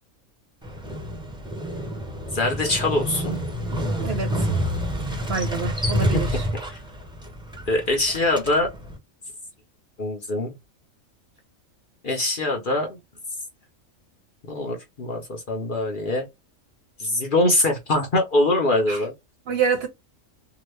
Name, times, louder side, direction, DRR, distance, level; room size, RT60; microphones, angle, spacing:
Motorcycle, 0.6-9.0, equal, 5° right, 0.5 m, -28 dB
voice 1, 2.3-3.4 6.1-6.2 6.7-6.8 7.7-8.7 10.0-10.5 12.0-13.0 14.5-16.3 17.0-19.1, left 2 dB, 45° left, 0.8 m, -23 dB
voice 2, 4.0-4.5 5.3-6.5 18.9-19.0 19.5-19.9, right 5 dB, 60° right, 0.8 m, -26 dB
2.9 x 2.3 x 3.1 m
omnidirectional pair, 1.4 m